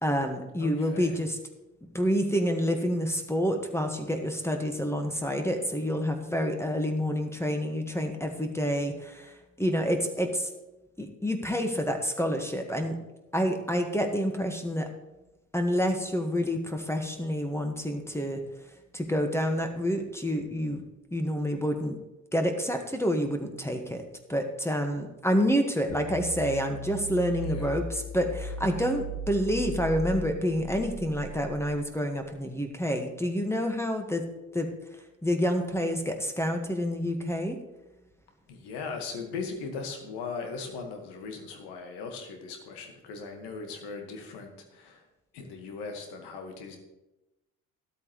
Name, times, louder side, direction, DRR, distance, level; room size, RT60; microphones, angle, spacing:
voice 1, 0.0-1.4 1.9-10.5 11.0-13.0 13.3-14.9 15.5-18.4 18.9-20.8 21.1-22.0 22.3-34.2 34.5-34.7 35.2-37.6, equal, 5° left, 5 dB, 1.6 m, -28 dB
voice 2, 0.6-1.2 27.3-27.8 28.7-29.0 38.5-45.1 45.3-46.8, left 4 dB, 70° left, 4 dB, 1.8 m, -39 dB
sound 1, 25.9-32.1, equal, 85° left, 2.9 m, -38 dB
12.5 x 12.0 x 3.2 m, 0.99 s
hypercardioid pair, 45°, 42 cm